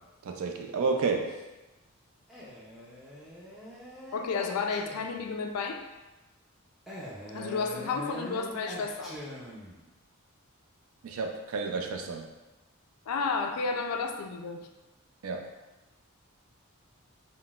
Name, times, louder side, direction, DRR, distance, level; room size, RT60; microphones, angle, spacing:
voice 1, 0.2-1.4 11.0-12.3 15.2-15.5, right 4 dB, 70° right, 3 dB, 0.4 m, -31 dB
Male speech man speaking, 2.3-5.3 6.9-9.8, equal, ahead, 0.4 m, -43 dB
voice 2, 4.1-5.8 7.3-9.2 13.1-14.7, left 4 dB, 90° left, 4 dB, 0.3 m, -32 dB
3.9 x 2.0 x 2.3 m, 1.1 s
head